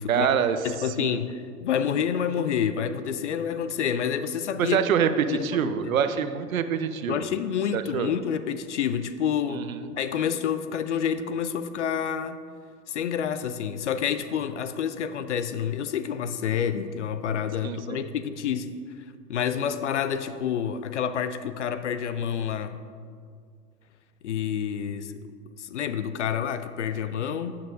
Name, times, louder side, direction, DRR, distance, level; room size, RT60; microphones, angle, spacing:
voice 1, 0.1-0.6 1.0-1.2 4.6-7.3 7.7-8.1 9.5-9.9 17.6-18.0, right 8 dB, 55° right, 11 dB, 0.6 m, -25 dB
voice 2, 0.6-4.8 5.3-6.0 7.1-9.7 10.0-12.4 12.9-18.7 19.3-22.8 24.2-25.1 25.6-27.6, left 8 dB, 50° left, 12 dB, 0.4 m, -28 dB
12.5 x 8.4 x 2.5 m, 2.1 s
figure-of-eight pair, 100°, 48 cm